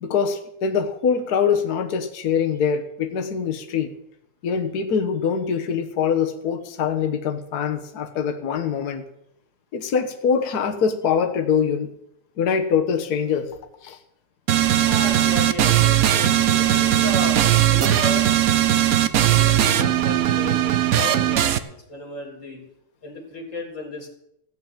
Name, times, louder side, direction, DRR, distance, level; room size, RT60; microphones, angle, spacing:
voice 1, 0.0-3.9 4.4-9.0 9.7-11.9 12.4-13.5 13.8-14.0, left 6 dB, 55° left, 4 dB, 1.6 m, -23 dB
sound 1, 14.5-21.6, right 12 dB, 65° right, 0.9 m, -19 dB
voice 2, 14.8-18.3 19.3-22.6 23.0-24.1, left 1 dB, 35° left, 0 dB, 3.8 m, -33 dB
15.5 x 6.4 x 9.0 m, 0.77 s
omnidirectional pair, 2.2 m